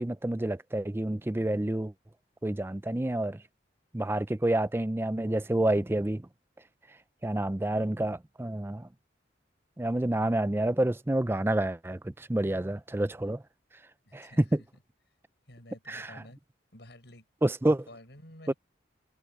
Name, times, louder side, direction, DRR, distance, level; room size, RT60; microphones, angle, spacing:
voice 1, 0.0-1.9 2.4-3.4 3.9-6.3 7.2-8.9 9.8-13.4 14.1-14.6 15.9-16.1 17.4-17.9 18.5-18.6, right 1 dB, 10° right, 0.4 m, -28 dB
voice 2, 14.1-14.5 15.5-16.4 16.7-17.3 17.9-18.5, left 1 dB, 65° left, 7.0 m, -51 dB
head